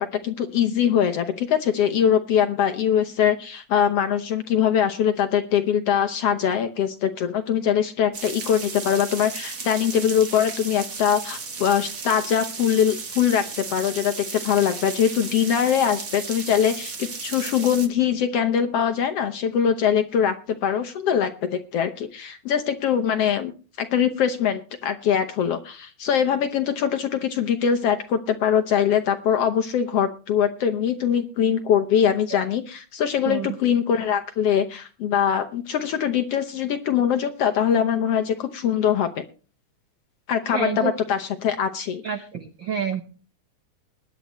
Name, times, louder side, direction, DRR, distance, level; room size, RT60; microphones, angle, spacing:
voice 1, 0.0-23.5 23.8-39.2 40.3-42.0, left 8 dB, 70° left, 8 dB, 1.5 m, -22 dB
sound 1, 8.1-17.9, right 5 dB, 40° right, 1.3 m, -35 dB
voice 2, 40.5-40.9 42.0-43.0, right 7 dB, 80° right, 8 dB, 1.0 m, -28 dB
21.0 x 10.0 x 3.1 m, 0.35 s
omnidirectional pair, 3.6 m